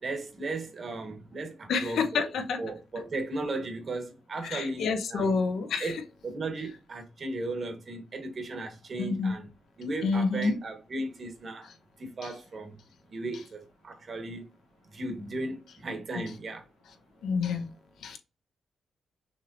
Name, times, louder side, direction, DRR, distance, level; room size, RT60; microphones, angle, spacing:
voice 1, 0.0-2.3 2.6-5.3 5.8-6.0 6.2-9.5 9.8-11.7 12.0-12.8 13.1-14.4 14.9-16.6, right 2 dB, 45° right, 1.3 m, -36 dB
voice 2, 1.7-2.6 4.4-5.9 9.0-9.3 10.0-10.6 17.2-17.7 18.0-18.2, left 4 dB, 85° left, 1.0 m, -28 dB
6.3 x 3.1 x 2.6 m
cardioid pair, 125°, 0 cm